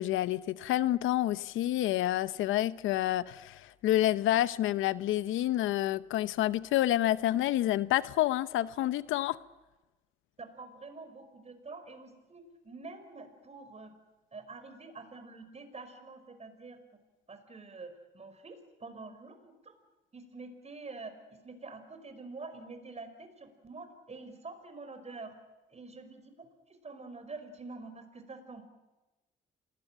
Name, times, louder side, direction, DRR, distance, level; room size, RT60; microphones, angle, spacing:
voice 1, 0.0-9.4, left 14 dB, 90° left, 0.8 m, -28 dB
voice 2, 10.4-13.9 14.3-16.8 17.3-19.7 20.1-21.1 21.4-25.4 25.7-26.5 26.8-28.6, right 3 dB, 35° right, 5.1 m, -46 dB
27.0 x 20.0 x 9.1 m
cardioid pair, 90°, 20 cm